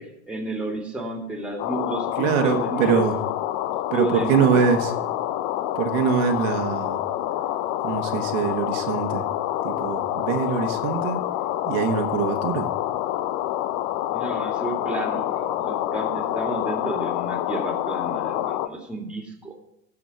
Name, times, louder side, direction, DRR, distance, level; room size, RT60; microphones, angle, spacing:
voice 1, 0.0-3.0 3.9-4.7 14.1-19.6, right 2 dB, 5° right, 3 dB, 2.2 m, -31 dB
sound 1, 1.6-18.7, left 13 dB, 50° left, 0.7 m, -27 dB
voice 2, 2.2-3.2 3.9-4.9 5.7-7.0 7.8-9.2 9.6-11.2 11.7-12.7, right 7 dB, 65° right, 4 dB, 1.3 m, -23 dB
12.5 x 5.0 x 6.9 m, 0.81 s
hypercardioid pair, 105°, 41 cm